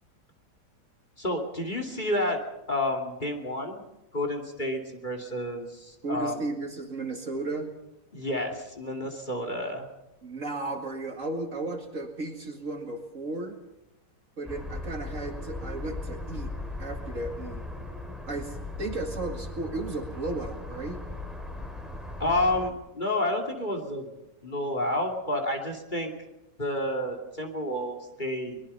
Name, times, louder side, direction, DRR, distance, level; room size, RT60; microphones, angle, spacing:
voice 1, 1.2-2.4 2.7-3.8 4.1-6.4 8.1-9.9 22.2-24.1 24.4-26.1 26.6-28.6, left 1 dB, 25° left, 4 dB, 2.8 m, -30 dB
voice 2, 6.0-7.7 10.2-13.6 14.4-16.5 16.8-17.7 18.3-21.0, right 2 dB, 45° right, 4 dB, 2.4 m, -34 dB
sound 1, 14.5-22.7, left 2 dB, ahead, 3.1 m, -38 dB
23.5 x 21.5 x 5.6 m, 0.92 s
omnidirectional pair, 1.9 m